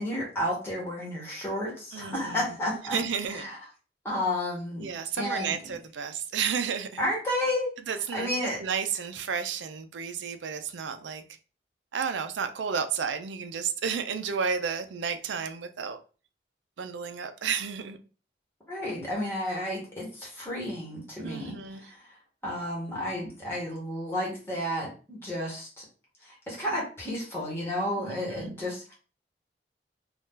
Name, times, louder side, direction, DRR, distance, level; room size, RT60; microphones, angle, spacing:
voice 1, 0.0-3.0 3.4-3.6 4.0-4.9 5.2-5.5 7.0-7.8 8.1-8.6 18.7-21.5 21.9-22.0 22.4-25.8 26.2-28.9, left 1 dB, 15° left, 1.1 m, -31 dB
voice 2, 1.9-2.6 2.9-3.5 4.8-7.0 7.9-11.4 11.9-16.0 16.8-18.0 21.2-21.9 28.0-28.6, right 6 dB, 90° right, 0.4 m, -32 dB
2.7 x 2.4 x 3.6 m
head